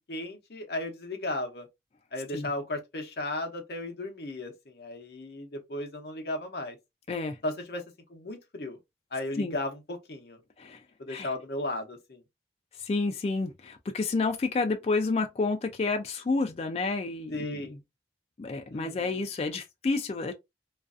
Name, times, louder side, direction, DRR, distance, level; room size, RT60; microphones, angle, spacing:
voice 1, 0.1-1.7 2.1-6.8 7.4-7.8 8.1-8.8 9.1-10.4 11.0-12.2 17.3-17.8 18.7-19.2, left 1 dB, 65° left, 0.7 m, -35 dB
voice 2, 12.8-17.6 18.4-20.3, left 3 dB, 35° left, 0.3 m, -30 dB
2.4 x 2.4 x 2.4 m
head